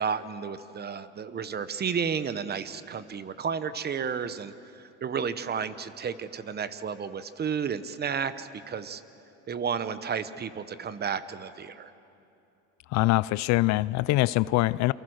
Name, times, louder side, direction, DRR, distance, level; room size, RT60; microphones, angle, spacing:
voice 1, 0.0-9.0 9.5-11.9, right 6 dB, 30° right, 13 dB, 1.0 m, -32 dB
voice 2, 12.9-14.9, left 19 dB, 60° left, 20 dB, 0.5 m, -23 dB
28.0 x 24.0 x 6.5 m, 2.8 s
supercardioid pair, 115°, 32 cm